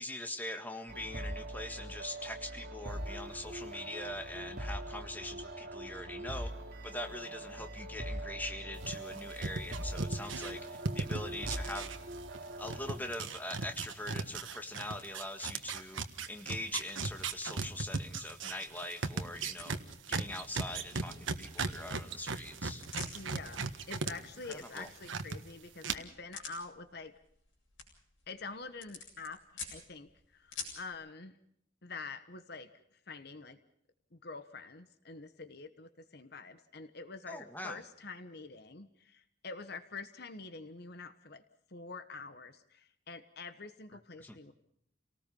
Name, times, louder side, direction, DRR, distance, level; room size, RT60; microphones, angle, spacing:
voice 1, 0.0-6.5 6.8-10.6 10.9-11.9 12.6-16.0 16.3-19.8 20.1-22.8 24.4-24.9 37.3-37.8 44.2-44.4, left 1 dB, 10° left, 5 dB, 1.8 m, -42 dB
sound 1, 0.9-13.0, right 1 dB, 55° right, 3.1 m, -42 dB
sound 2, 8.8-12.4 12.6-24.1 24.4-25.4 25.8-25.9, right 4 dB, 75° right, 1.5 m, -37 dB
sound 3, 12.8-30.9, left 4 dB, 70° left, 7.7 m, -53 dB
voice 2, 23.1-27.1 28.3-31.4 31.8-33.6 34.1-41.4 41.7-44.5, left 4 dB, 55° left, 10 dB, 1.2 m, -46 dB
29.5 x 19.0 x 5.5 m, 0.71 s
head